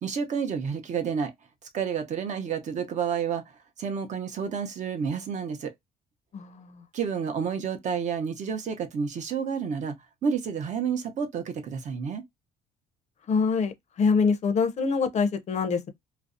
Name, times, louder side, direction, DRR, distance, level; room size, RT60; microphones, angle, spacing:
voice 1, 0.0-1.3 1.7-3.4 3.8-5.7 6.9-10.0 10.2-12.2, right 6 dB, 45° right, 0.6 m, -30 dB
voice 2, 6.3-6.8 13.3-15.9, left 5 dB, 45° left, 0.5 m, -25 dB
2.5 x 2.0 x 2.5 m
cardioid pair, 110°, 17 cm